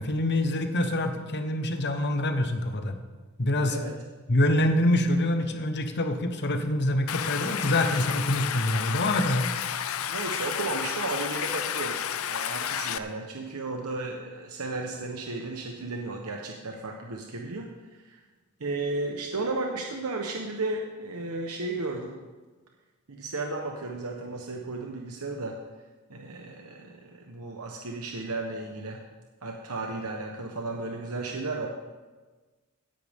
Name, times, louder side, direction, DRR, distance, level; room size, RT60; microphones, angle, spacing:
voice 1, 0.0-3.0 3.4-3.8 4.3-9.5, left 1 dB, 50° left, 6 dB, 1.1 m, -25 dB
Stream, 7.1-13.0, left 9 dB, 65° left, 0.5 m, -31 dB
voice 2, 10.1-12.0 12.3-17.7 18.0-18.2 18.6-22.2 23.1-25.6 26.1-29.0 29.4-31.7, right 3 dB, 85° right, 1 dB, 1.1 m, -34 dB
17.0 x 10.5 x 3.7 m, 1.3 s
head